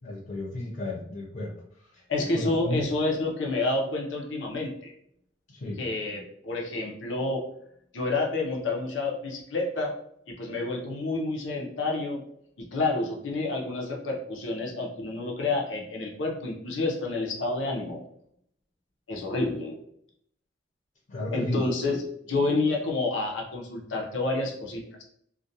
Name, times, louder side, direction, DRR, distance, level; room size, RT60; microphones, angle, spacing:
voice 1, 0.0-1.5 1.8-2.0 2.3-2.9 5.5-5.8 21.1-21.6, left 1 dB, 45° left, -4 dB, 0.6 m, -33 dB
voice 2, 2.1-4.9 5.8-7.4 7.9-9.9 10.3-12.2 12.6-18.0 19.1-19.8 21.3-25.0, left 2 dB, 85° left, 0 dB, 0.6 m, -29 dB
2.4 x 2.2 x 2.7 m, 0.70 s
head